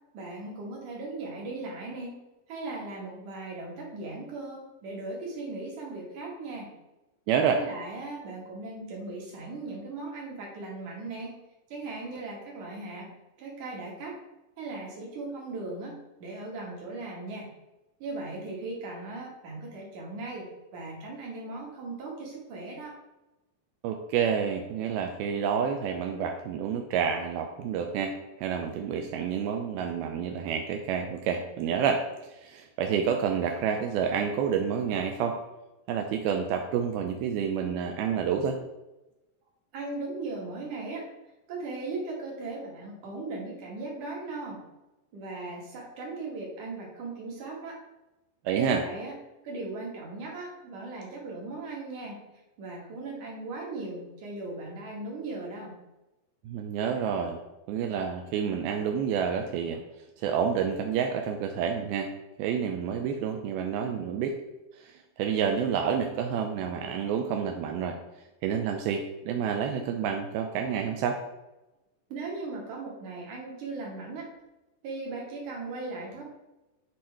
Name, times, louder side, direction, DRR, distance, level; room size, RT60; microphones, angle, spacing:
voice 1, 0.1-2.2 2.5-6.7 7.5-11.4 11.7-13.1 13.4-14.2 14.6-17.5 18.0-20.5 20.7-23.0 39.7-41.1 41.5-44.6 45.1-47.8 48.5-49.1 49.4-52.2 52.6-55.7 72.1-74.3 74.8-76.2, right 3 dB, 55° right, -3 dB, 3.1 m, -38 dB
voice 2, 7.3-7.6 23.8-35.4 35.9-38.6 48.5-48.8 56.5-57.4 57.7-59.8 60.2-62.1 62.4-64.4 64.8-68.0 68.4-71.2, right 7 dB, 80° right, 4 dB, 2.4 m, -29 dB
9.3 x 4.4 x 4.8 m, 0.99 s
omnidirectional pair, 4.6 m